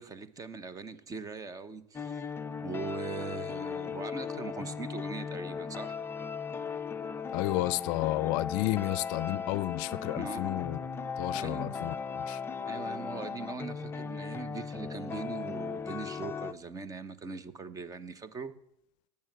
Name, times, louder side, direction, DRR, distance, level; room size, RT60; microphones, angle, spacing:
voice 1, 0.0-2.3 2.6-5.9 10.1-10.7 11.3-11.8 12.7-18.5, right 4 dB, 20° right, 1.1 m, -41 dB
sound 1, 1.9-16.5, left 6 dB, 15° left, 0.6 m, -37 dB
voice 2, 7.3-10.8 11.2-12.0 12.3-12.4, left 19 dB, 55° left, 0.5 m, -31 dB
18.5 x 7.2 x 9.2 m
supercardioid pair, 130°, 16 cm